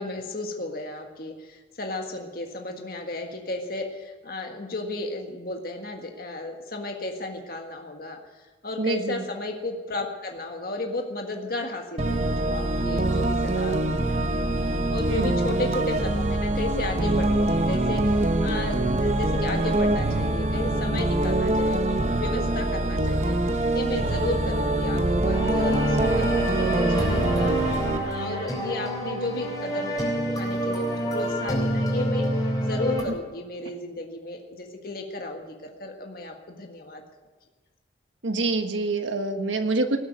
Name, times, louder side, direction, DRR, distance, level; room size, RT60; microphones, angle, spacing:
voice 1, 0.0-23.3 23.7-27.5 28.0-37.0, left 2 dB, 50° left, 2 dB, 1.6 m, -34 dB
voice 2, 8.8-9.2 15.1-15.4 38.2-40.0, right 2 dB, 90° right, 6 dB, 1.5 m, -26 dB
sound 1, 12.0-28.0, right 1 dB, 35° right, 0.9 m, -24 dB
sound 2, 25.3-33.0, equal, 20° left, 3.6 m, -28 dB
18.5 x 8.2 x 9.4 m, 1.3 s
head